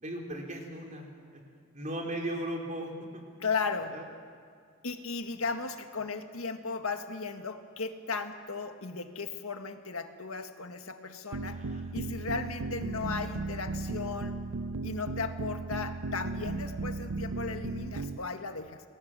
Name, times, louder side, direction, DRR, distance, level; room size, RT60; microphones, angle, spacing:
voice 1, 0.0-1.1 1.3-1.4 1.7-2.9 3.9-4.0 11.5-11.9 12.2-12.3, right 1 dB, 35° right, 0 dB, 4.1 m, -37 dB
voice 2, 3.4-4.0 4.8-11.6 11.9-14.4 14.8-18.8, left 4 dB, 85° left, 6 dB, 1.7 m, -36 dB
sound 1, 11.3-18.2, right 3 dB, 85° right, 0.7 m, -36 dB
28.0 x 20.5 x 7.6 m, 2.2 s
head